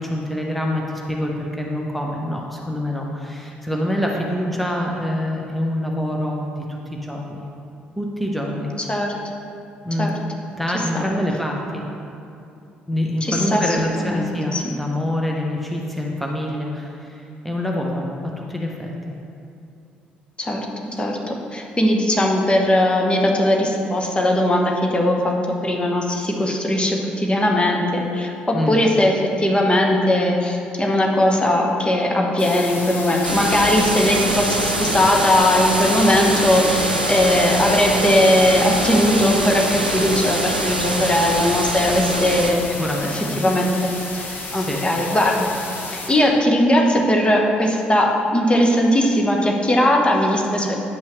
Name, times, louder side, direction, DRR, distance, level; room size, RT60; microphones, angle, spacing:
voice 1, 0.0-7.4 8.0-8.7 9.8-10.2 10.6-11.8 12.9-18.9 28.5-28.8 42.7-43.4 44.5-44.8, left 1 dB, ahead, -1 dB, 1.1 m, -25 dB
voice 2, 13.2-14.6 20.4-20.7 20.9-25.4 25.6-42.6 43.1-45.5 45.9-50.8, left 1 dB, 20° left, 0 dB, 1.2 m, -19 dB
sound 1, 32.4-46.1, left 3 dB, 40° left, 1.4 m, -32 dB
sound 2, 33.2-42.5, right 1 dB, 90° right, 0.5 m, -24 dB
10.0 x 8.5 x 3.3 m, 2.6 s
figure-of-eight pair, 45°, 5 cm